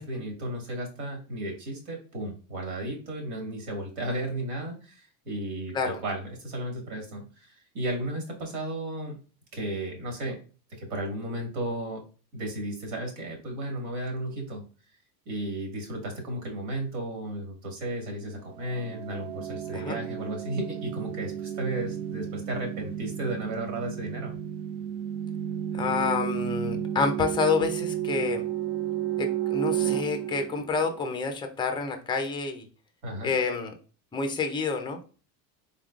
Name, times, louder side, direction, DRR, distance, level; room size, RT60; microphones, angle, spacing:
voice 1, 0.0-9.2 9.5-10.4 10.7-12.0 12.3-14.6 15.3-24.4 33.0-33.4, right 1 dB, 75° right, 1 dB, 2.0 m, -34 dB
sound 1, 18.5-31.2, right 11 dB, 55° right, 0.5 m, -32 dB
voice 2, 25.7-28.4 29.2-32.7 33.2-33.7 34.1-35.0, left 4 dB, 10° left, 6 dB, 0.3 m, -28 dB
3.9 x 3.6 x 2.4 m, 0.36 s
supercardioid pair, 125°, 49 cm